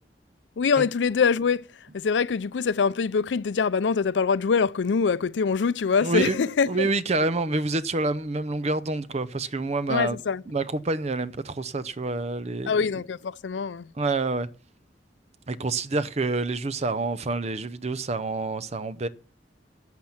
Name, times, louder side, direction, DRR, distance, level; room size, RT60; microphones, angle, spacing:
voice 1, 0.6-6.9 9.9-10.4 12.7-13.9, left 5 dB, 90° left, 0.4 m, -24 dB
voice 2, 6.0-6.4 6.7-10.2 10.5-12.7 14.0-14.5 15.5-19.1, right 3 dB, 40° right, 0.6 m, -27 dB
11.5 x 7.5 x 5.8 m
head